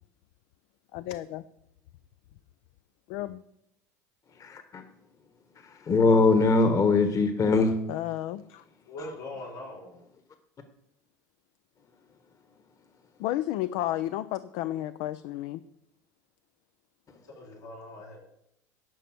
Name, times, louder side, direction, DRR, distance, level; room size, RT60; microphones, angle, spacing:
voice 1, 0.9-1.4 3.1-3.4 7.9-8.6 13.2-15.6, left 14 dB, 65° left, 14 dB, 0.5 m, -32 dB
voice 2, 4.4-4.8 5.9-7.7, left 3 dB, 35° left, 8 dB, 1.4 m, -21 dB
voice 3, 8.9-10.0 17.3-18.2, left 2 dB, 85° left, -2 dB, 5.2 m, -41 dB
11.0 x 5.6 x 7.7 m, 0.78 s
hypercardioid pair, 85°, 9 cm